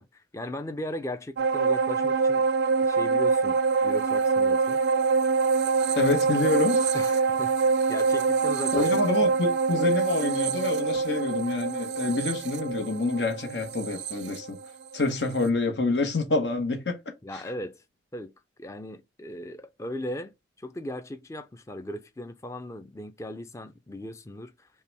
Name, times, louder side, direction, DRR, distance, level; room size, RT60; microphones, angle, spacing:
voice 1, 0.0-2.4 2.8-4.8 6.9-9.0 17.2-17.8 18.1-18.3 18.6-24.7, left 1 dB, 15° left, 0.4 m, -38 dB
sound 1, 1.4-15.1 15.4-15.5, right 4 dB, 75° right, 0.4 m, -25 dB
voice 2, 5.9-6.9 8.7-14.6 14.9-17.0 17.3-17.4, left 3 dB, 80° left, 1.1 m, -27 dB
5.5 x 2.3 x 3.3 m
head